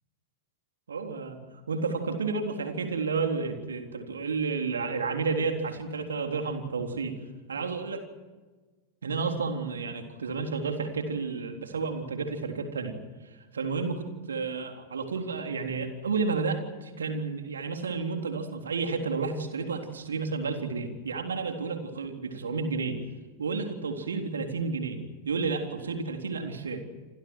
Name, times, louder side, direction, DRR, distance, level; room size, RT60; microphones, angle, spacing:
voice 1, 0.9-1.4 1.7-7.2 7.5-8.1 9.0-13.0 13.5-23.0 23.4-25.0 25.2-26.8, right 4 dB, 70° right, 4 dB, 3.7 m, -31 dB
28.5 x 27.5 x 4.8 m, 1.3 s
figure-of-eight pair, 90°, 0 cm